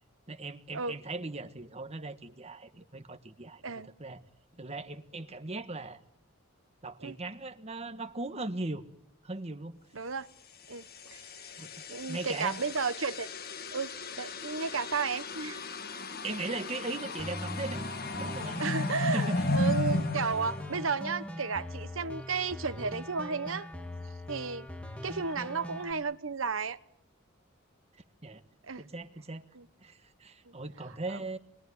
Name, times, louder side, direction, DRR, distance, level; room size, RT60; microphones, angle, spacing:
voice 1, 0.3-3.6 4.0-4.2 4.6-6.0 6.8-8.8 9.2-9.8 11.6-11.7 12.1-12.6 16.2-17.8 18.1-18.6 19.1-19.5 28.2-28.4 28.8-29.5 29.8-31.4, right 2 dB, 30° right, 1.4 m, -38 dB
voice 2, 9.9-10.3 10.7-10.8 11.1-11.2 11.9-13.3 13.7-13.9 14.2-15.6 18.6-23.7 24.3-24.7 25.0-26.8 28.6-28.8 29.6-29.7 31.1-31.2, right 5 dB, 75° right, 1.1 m, -33 dB
sound 1, 10.7-21.4, left 2 dB, 50° left, 1.9 m, -35 dB
sound 2, 17.2-25.9, equal, 5° left, 2.2 m, -41 dB
28.5 x 21.5 x 9.7 m
head